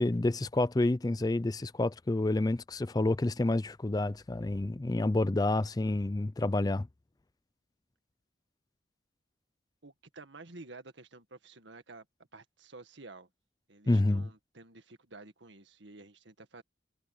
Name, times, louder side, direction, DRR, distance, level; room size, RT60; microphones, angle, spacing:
voice 1, 0.0-6.9 13.9-14.3, left 2 dB, 20° left, 0.4 m, -29 dB
voice 2, 9.8-12.1 12.3-13.3 13.7-16.6, right 3 dB, 75° right, 1.8 m, -51 dB
head